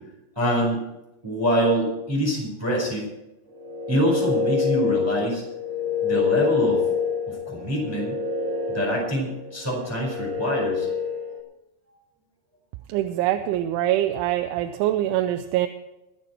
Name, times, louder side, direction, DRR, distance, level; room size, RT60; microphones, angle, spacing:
voice 1, 0.4-0.8 1.2-3.1 3.9-5.4 6.0-6.8 7.3-8.2 8.7-10.9, equal, 5° right, -2 dB, 3.9 m, -25 dB
sound 1, 3.5-11.4, left 5 dB, 65° right, 2.0 m, -27 dB
voice 2, 12.9-15.7, right 13 dB, 85° right, 8 dB, 3.0 m, -24 dB
22.5 x 8.5 x 4.5 m, 0.94 s
omnidirectional pair, 5.4 m